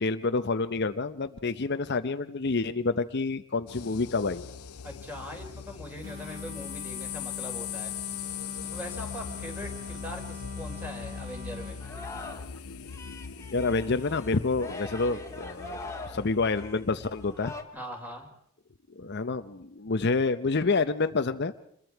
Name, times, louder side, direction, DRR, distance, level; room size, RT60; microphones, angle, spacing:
voice 1, 0.0-4.5 13.5-17.5 19.0-21.5, left 3 dB, 50° left, 10 dB, 0.7 m, -28 dB
sound 1, 3.7-17.5, left 7 dB, 90° left, 0.7 m, -41 dB
voice 2, 4.8-7.9 8.7-11.8 17.7-18.3, equal, 10° right, 2 dB, 3.7 m, -41 dB
sound 2, 6.0-11.9, left 4 dB, 35° right, 5.3 m, -42 dB
Singing, 11.8-12.6 12.8-17.6, left 3 dB, 15° left, 1.9 m, -42 dB
27.0 x 21.5 x 4.6 m, 0.69 s
head